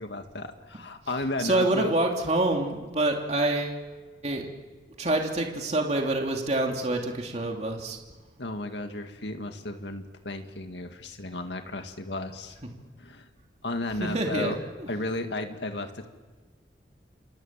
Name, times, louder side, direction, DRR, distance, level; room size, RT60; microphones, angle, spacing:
voice 1, 0.0-1.9 8.4-12.6 13.0-13.3 13.6-14.6 14.9-16.1, left 2 dB, 80° left, 6 dB, 2.1 m, -34 dB
voice 2, 1.4-3.8 4.2-4.5 5.0-8.0 14.0-14.9, right 2 dB, 40° right, 1 dB, 2.9 m, -26 dB
27.5 x 27.5 x 7.5 m, 1.3 s
head